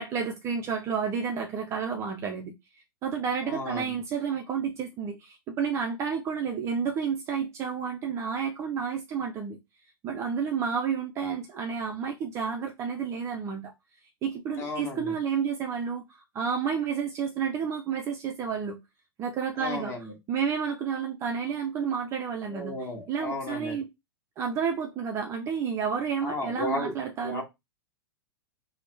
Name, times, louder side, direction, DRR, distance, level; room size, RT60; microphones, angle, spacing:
voice 1, 0.0-2.5 3.0-9.6 10.0-13.7 14.2-18.8 19.2-19.9 20.3-23.9 24.4-27.4, right 6 dB, 20° right, 0.4 m, -30 dB
voice 2, 3.4-4.0 14.6-15.1 19.6-20.1 22.5-23.8 26.2-26.9 27.2-27.4, left 2 dB, 20° left, 1.1 m, -34 dB
2.9 x 2.0 x 3.1 m
figure-of-eight pair, 100°, 13 cm